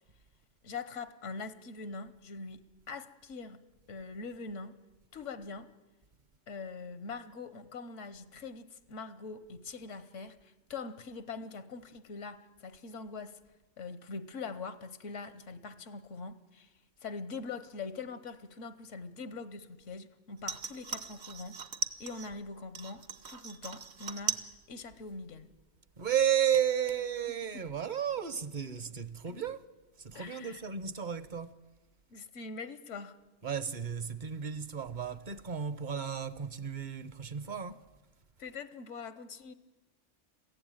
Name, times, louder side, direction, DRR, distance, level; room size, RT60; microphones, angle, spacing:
voice 1, 0.6-3.6 3.9-4.7 5.1-5.7 6.5-13.4 13.8-16.7 17.0-21.6 22.0-24.4 24.7-25.5 27.5-27.6 29.3-29.4 30.1-30.6 32.1-33.1 38.4-39.5, left 4 dB, 85° left, 1.3 m, -43 dB
sound 1, 20.4-22.3 22.7-24.5 24.8-25.4 25.8-25.9, right 5 dB, 60° right, 1.3 m, -38 dB
voice 2, 26.0-29.6 30.0-31.5 33.4-37.8, right 9 dB, 45° right, 0.9 m, -33 dB
22.0 x 15.5 x 9.0 m
omnidirectional pair, 1.2 m